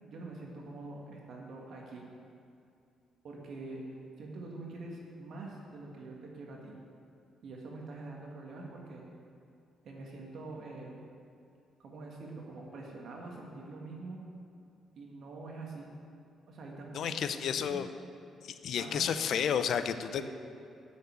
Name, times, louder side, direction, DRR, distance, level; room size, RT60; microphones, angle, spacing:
voice 1, 0.0-2.1 3.2-3.8 4.2-6.8 7.4-9.0 9.8-11.0 11.8-14.2 15.0-15.9 16.5-17.8 18.8-19.1 20.2-20.3, right 2 dB, 65° right, -1 dB, 1.7 m, -45 dB
voice 2, 16.9-17.9 18.6-20.3, left 8 dB, 70° left, 10 dB, 0.6 m, -31 dB
9.4 x 6.5 x 8.3 m, 2.6 s
cardioid pair, 90°, 0 cm